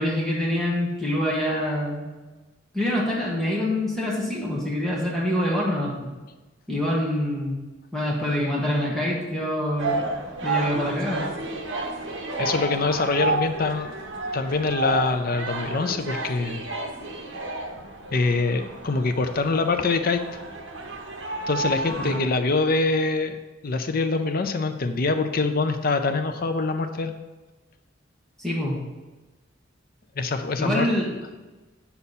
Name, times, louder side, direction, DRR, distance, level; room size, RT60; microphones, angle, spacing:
voice 1, 0.0-2.1 2.7-6.1 6.7-7.6 7.9-10.0 10.4-11.2 21.9-22.2 28.4-28.8 30.6-31.1, left 1 dB, ahead, -5 dB, 1.6 m, -25 dB
sound 1, 9.8-22.2, right 3 dB, 70° right, 1.1 m, -31 dB
voice 2, 12.4-13.9 14.3-16.6 18.1-20.2 21.5-23.4 23.6-27.1 30.2-30.9, left 3 dB, 45° left, 8 dB, 0.6 m, -24 dB
8.5 x 6.9 x 4.2 m, 1.2 s
head